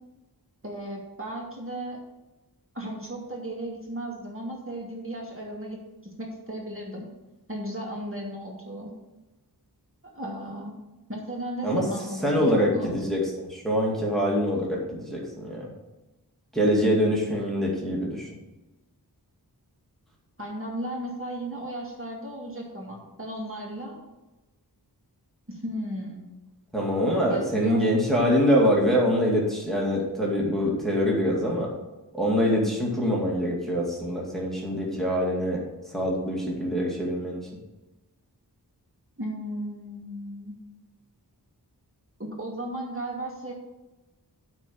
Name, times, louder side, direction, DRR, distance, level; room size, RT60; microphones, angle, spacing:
voice 1, 0.6-2.0 2.7-7.1 7.5-8.9 10.1-10.7 11.1-12.9 20.4-24.0 25.5-26.2 27.3-27.8 39.2-40.5 42.2-43.5, right 1 dB, 30° right, -2 dB, 2.3 m, -35 dB
voice 2, 12.2-15.7 16.5-18.3 26.7-31.7 32.1-35.6 35.9-37.5, equal, ahead, -4 dB, 2.2 m, -24 dB
9.0 x 4.5 x 7.1 m, 1.0 s
wide cardioid pair, 85°, 40 cm